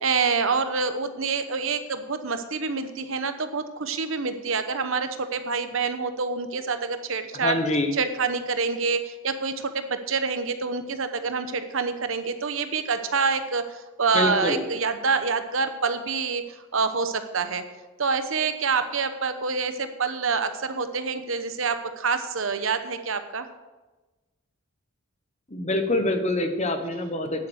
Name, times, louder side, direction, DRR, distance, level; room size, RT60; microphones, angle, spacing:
voice 1, 0.0-7.6 7.9-16.4 16.7-17.6 18.0-23.4, right 5 dB, 65° right, 9 dB, 1.0 m, -27 dB
voice 2, 7.3-7.9 14.1-14.6 25.5-27.5, left 1 dB, 30° left, 6 dB, 1.2 m, -25 dB
9.7 x 8.5 x 6.4 m, 1.2 s
head